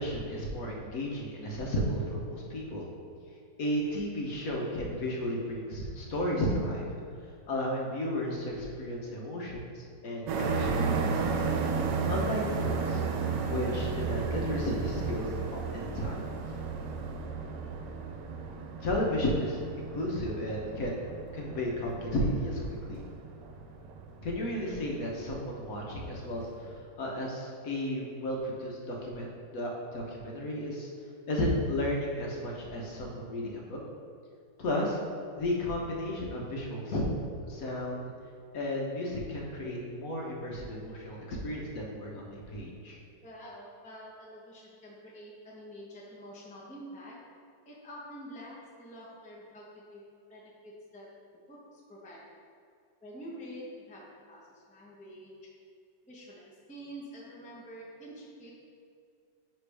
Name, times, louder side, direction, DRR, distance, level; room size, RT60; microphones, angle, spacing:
voice 1, 0.0-2.9 3.6-6.9 7.5-11.4 12.1-16.3 16.7-16.8 18.8-21.0 21.3-23.0 24.2-30.9 31.3-33.8 34.6-35.0 35.4-37.0 37.5-38.0 38.5-43.0, left 1 dB, 60° left, -2 dB, 1.2 m, -33 dB
sound 1, 10.3-26.8, right 5 dB, 90° right, 1.3 m, -34 dB
voice 2, 43.2-47.2 47.7-50.0 50.3-51.1 51.5-52.3 53.0-55.3 56.1-58.5, equal, 5° left, -4 dB, 0.6 m, -47 dB
9.8 x 3.4 x 3.3 m, 2.3 s
omnidirectional pair, 1.8 m